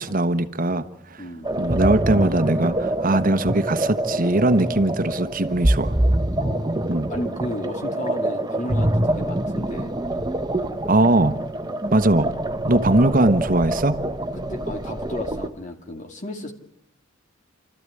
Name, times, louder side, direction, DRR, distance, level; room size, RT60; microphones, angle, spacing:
voice 1, 0.0-1.2 1.6-6.0 6.9-7.1 10.9-11.4 11.9-12.4 12.6-14.0, right 2 dB, 45° right, 1.2 m, -20 dB
voice 2, 1.2-1.5 6.3-9.9 14.3-16.5, left 1 dB, 35° left, 2.4 m, -33 dB
sound 1, 1.4-15.5, right 1 dB, 20° right, 1.2 m, -25 dB
29.0 x 14.0 x 9.8 m
head